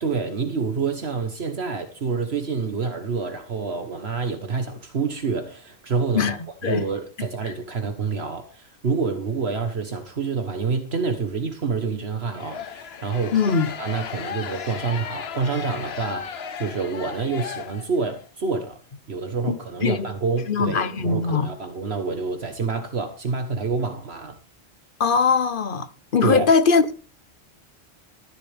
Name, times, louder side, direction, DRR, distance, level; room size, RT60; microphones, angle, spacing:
voice 1, 0.0-6.4 6.6-18.8 19.1-24.4 26.2-26.5, right 4 dB, 65° right, 1.6 m, -27 dB
sound 1, 12.3-18.2, left 7 dB, 65° left, 1.1 m, -35 dB
voice 2, 13.3-13.7 19.5-20.1 20.5-21.5 25.0-26.9, left 5 dB, 50° left, 1.1 m, -21 dB
13.5 x 11.5 x 3.5 m
omnidirectional pair, 1.1 m